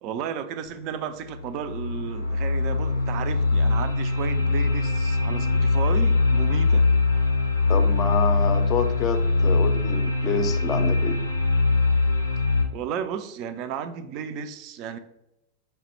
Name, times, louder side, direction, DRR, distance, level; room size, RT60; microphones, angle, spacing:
voice 1, 0.0-6.9 12.7-15.0, right 7 dB, 40° right, 10 dB, 0.3 m, -33 dB
sound 1, 0.7-0.8 1.3-12.6, left 3 dB, 85° left, 0.5 m, -22 dB
voice 2, 7.7-11.2, left 5 dB, 30° left, 7 dB, 0.4 m, -28 dB
5.2 x 2.1 x 3.0 m, 0.86 s
figure-of-eight pair, 90°, 0 cm